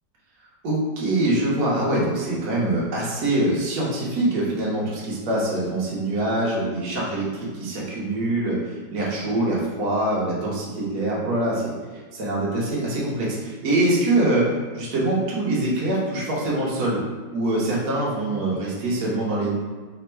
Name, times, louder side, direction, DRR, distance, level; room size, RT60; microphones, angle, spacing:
voice 1, 0.6-8.6 8.9-11.7 12.1-17.0 17.3-19.5, right 1 dB, 60° right, -5 dB, 1.4 m, -24 dB
3.5 x 2.1 x 4.3 m, 1.4 s
omnidirectional pair, 2.0 m